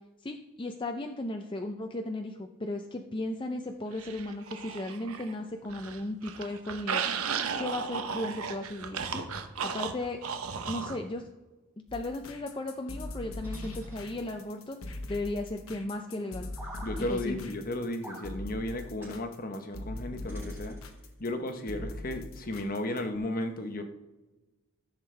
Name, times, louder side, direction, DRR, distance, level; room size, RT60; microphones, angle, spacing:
voice 1, 0.2-7.0 7.6-9.3 9.6-10.2 10.7-11.3 11.9-14.8 15.1-16.5 17.0-17.5, left 2 dB, 25° left, 4 dB, 0.5 m, -35 dB
sound 1, 4.0-5.3 5.6-11.0, right 6 dB, 90° right, 0.9 m, -35 dB
sound 2, 11.9-23.2, left 2 dB, 75° left, 1.1 m, -41 dB
sound 3, 13.4-14.6 16.5-17.0 18.0-18.3 19.0-19.2 20.3-21.1, right 1 dB, 10° right, 3.2 m, -47 dB
voice 2, 16.8-20.8 21.2-23.8, left 1 dB, 40° left, 7 dB, 0.9 m, -34 dB
14.0 x 7.3 x 3.3 m, 1.2 s
head